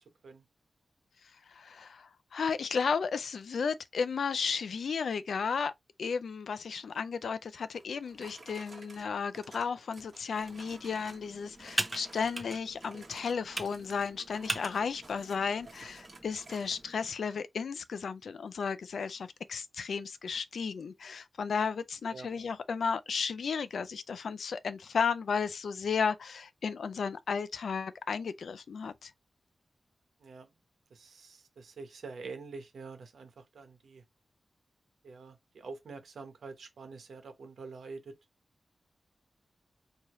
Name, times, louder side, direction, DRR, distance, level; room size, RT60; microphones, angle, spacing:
voice 1, 1.5-5.7 6.0-29.1, left 5 dB, 90° left, 0.4 m, -34 dB
sound 1, 7.8-11.3 11.6-12.4 12.7-16.8, right 3 dB, 40° right, 1.3 m, -53 dB
Computer keyboard, 10.3-17.1, right 1 dB, 15° right, 0.8 m, -41 dB
voice 2, 30.2-30.5 30.9-34.0 35.0-38.1, right 4 dB, 90° right, 1.0 m, -46 dB
4.7 x 2.8 x 3.0 m
wide cardioid pair, 175°, 0 cm